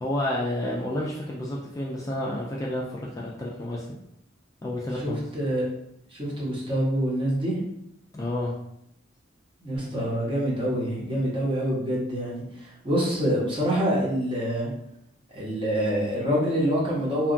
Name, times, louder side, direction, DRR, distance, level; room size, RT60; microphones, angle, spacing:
voice 1, 0.0-4.0 4.6-5.2 8.1-8.5, left 1 dB, 20° left, -4 dB, 0.3 m, -30 dB
voice 2, 4.9-5.6 6.1-7.6 9.6-14.7 15.3-17.3, equal, 30° right, -6 dB, 0.9 m, -26 dB
2.8 x 2.3 x 2.5 m, 0.76 s
head